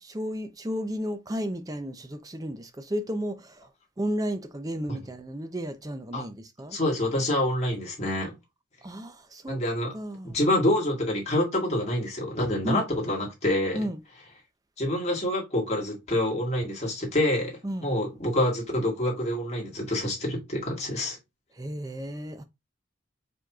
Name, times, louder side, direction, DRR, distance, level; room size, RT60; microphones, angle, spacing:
voice 1, 0.0-3.7 4.0-6.8 8.8-9.6 9.9-10.4 12.6-12.8 13.7-14.0 17.6-17.9 21.5-22.4, equal, 20° right, 0.5 m, -33 dB
voice 2, 6.7-8.3 9.5-9.9 10.2-13.8 14.8-17.5 17.8-21.2, left 1 dB, 35° left, 1.8 m, -27 dB
4.6 x 4.5 x 2.3 m
head